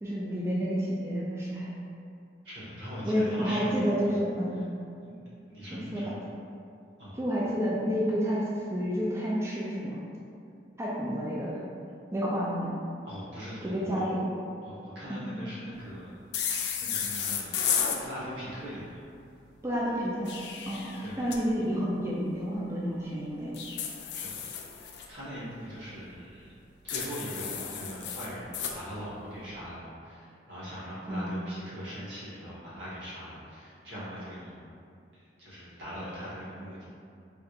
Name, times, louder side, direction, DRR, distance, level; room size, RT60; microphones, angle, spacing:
voice 1, 0.0-1.7 3.0-4.6 5.7-6.1 7.1-10.0 10.8-11.6 12.1-12.8 13.6-14.2 15.1-15.3 19.6-20.4 20.7-23.6 31.1-31.4, equal, 15° right, -6 dB, 0.3 m, -30 dB
voice 2, 2.4-3.8 4.0-4.2 4.6-4.7 5.0-6.1 7.0-7.2 13.1-14.0 14.6-16.1 16.8-17.5 18.0-19.0 21.0-21.2 24.1-24.4 24.6-26.4 26.8-34.6 35.1-36.8, equal, 80° right, -10 dB, 1.2 m, -41 dB
sound 1, 16.3-18.0 20.0-21.4 23.5-25.1 26.9-28.8, left 7 dB, 65° left, 0.3 m, -33 dB
3.4 x 2.8 x 2.4 m, 2.5 s
head